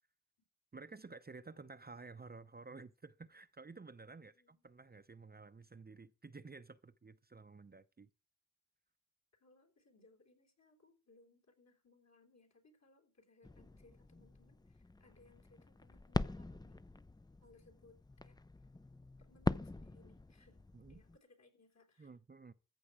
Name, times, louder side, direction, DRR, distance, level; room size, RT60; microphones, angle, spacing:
voice 1, 0.7-8.1 20.7-21.0 22.0-22.5, right 4 dB, 30° right, 0.7 m, -53 dB
voice 2, 4.1-4.7 9.4-16.8 17.4-18.4 19.2-20.6 20.9-22.2, left 3 dB, 55° left, 3.6 m, -67 dB
sound 1, 13.4-21.2, left 2 dB, 15° left, 0.5 m, -43 dB
14.5 x 7.8 x 4.9 m
cardioid pair, 70°, 32 cm